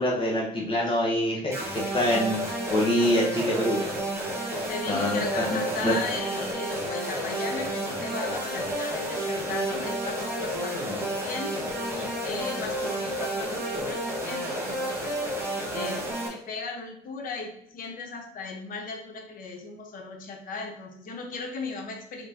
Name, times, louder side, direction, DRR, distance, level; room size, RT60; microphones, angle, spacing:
voice 1, 0.0-1.7 1.9-2.4 2.7-3.8 4.9-5.9, left 1 dB, 30° left, -3 dB, 1.1 m, -25 dB
sound 1, 1.5-16.3, right 1 dB, 15° right, 1.4 m, -31 dB
voice 2, 4.4-11.6 11.9-15.2 15.7-22.3, left 4 dB, 55° left, 3 dB, 1.0 m, -37 dB
5.2 x 3.1 x 2.8 m, 0.71 s
cardioid pair, 110°, 17 cm